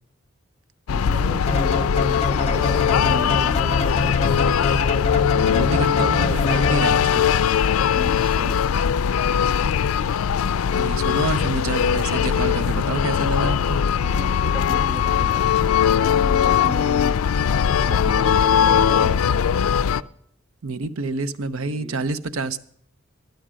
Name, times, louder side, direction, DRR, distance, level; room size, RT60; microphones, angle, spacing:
sound 1, 0.9-20.0, left 8 dB, 85° left, 0.4 m, -20 dB
voice 1, 0.9-3.8 7.9-8.7 14.0-15.6 16.2-17.2 17.8-19.4 21.7-22.1, right 2 dB, 25° right, 0.5 m, -36 dB
sound 2, 1.5-7.2, left 3 dB, 30° left, 0.6 m, -25 dB
voice 2, 5.5-7.3 10.7-13.8 20.6-22.6, right 3 dB, 80° right, 0.6 m, -27 dB
12.5 x 9.1 x 6.2 m
head